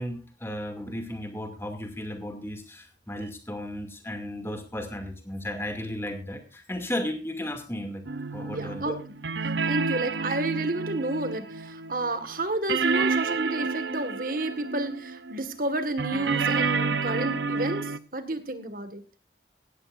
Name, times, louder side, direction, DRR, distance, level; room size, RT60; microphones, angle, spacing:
voice 1, 0.0-8.0 8.3-8.9, left 1 dB, 15° left, 5 dB, 2.5 m, -34 dB
sound 1, 8.1-12.4 12.7-15.5 16.0-18.0, right 4 dB, 80° right, 0.7 m, -29 dB
voice 2, 8.5-9.2 9.4-19.0, right 2 dB, 50° right, 9 dB, 1.8 m, -31 dB
17.5 x 14.0 x 2.6 m, 0.32 s
head